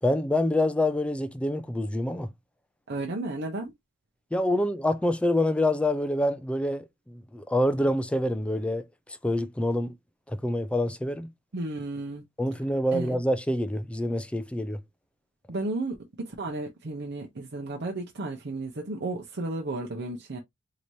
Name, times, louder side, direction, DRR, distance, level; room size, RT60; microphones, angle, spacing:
voice 1, 0.0-2.3 4.3-10.0 10.3-11.3 12.4-14.8, left 1 dB, 5° left, 0.3 m, -26 dB
voice 2, 2.9-3.7 11.5-12.2 12.9-13.2 15.5-20.4, right 2 dB, 55° right, 0.7 m, -33 dB
4.6 x 2.9 x 2.6 m
head